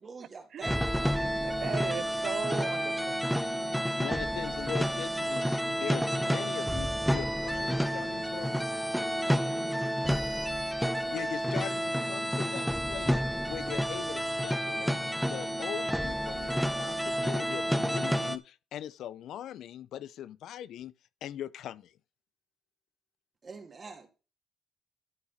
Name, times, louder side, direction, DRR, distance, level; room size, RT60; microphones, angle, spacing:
voice 1, 0.0-1.3 23.4-24.1, right 4 dB, 40° right, 2.9 m, -46 dB
sound 1, 0.6-18.4, equal, ahead, 0.8 m, -30 dB
voice 2, 1.2-3.2, right 9 dB, 65° right, 0.4 m, -38 dB
voice 3, 3.9-8.9 11.1-15.0 15.3-20.9 21.2-22.0, left 11 dB, 75° left, 0.6 m, -41 dB
12.0 x 5.8 x 4.2 m
cardioid pair, 90°, 0 cm